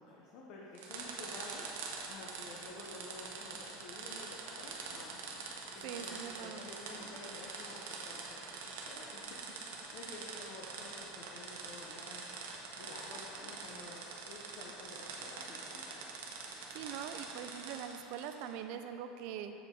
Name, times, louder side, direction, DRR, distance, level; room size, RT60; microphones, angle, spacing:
voice 1, 0.0-14.0 14.3-16.0, left 2 dB, 50° left, -3 dB, 0.7 m, -51 dB
sound 1, 0.7-18.5, right 4 dB, 75° right, 0.8 m, -45 dB
voice 2, 5.8-6.6 16.7-19.5, right 9 dB, 50° right, 8 dB, 0.4 m, -43 dB
7.8 x 4.8 x 3.6 m, 2.7 s
supercardioid pair, 175°, 0 cm